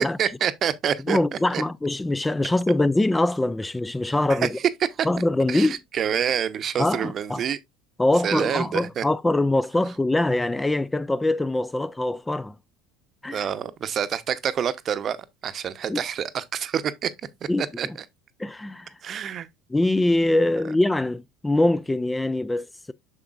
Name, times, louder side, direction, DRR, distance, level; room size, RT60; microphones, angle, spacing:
voice 1, 0.2-1.2 1.5-1.6 4.4-4.5 5.0-5.1 5.5-7.6 8.2-9.0 13.3-15.2 15.4-17.1 17.6-17.9 19.0-19.5, right 8 dB, 40° right, 0.7 m, -27 dB
voice 2, 1.1-4.6 5.1-5.8 6.8-7.4 8.0-12.5 13.2-13.5 15.9-16.0 17.5-18.0 18.4-18.9 19.7-22.9, left 2 dB, 10° left, 0.3 m, -23 dB
7.1 x 6.7 x 2.4 m
figure-of-eight pair, 70°, 0 cm